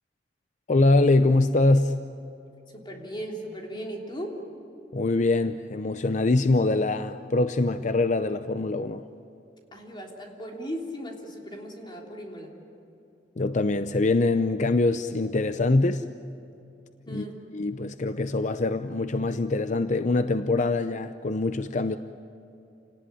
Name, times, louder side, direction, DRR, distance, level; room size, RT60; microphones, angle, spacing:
voice 1, 0.7-1.9 4.9-9.1 13.4-16.0 17.1-17.3 17.5-22.0, left 2 dB, 45° left, 10 dB, 0.6 m, -23 dB
voice 2, 2.7-4.4 9.7-12.6 17.1-17.4, equal, 25° left, 0 dB, 3.4 m, -37 dB
28.0 x 19.0 x 10.0 m, 2.8 s
head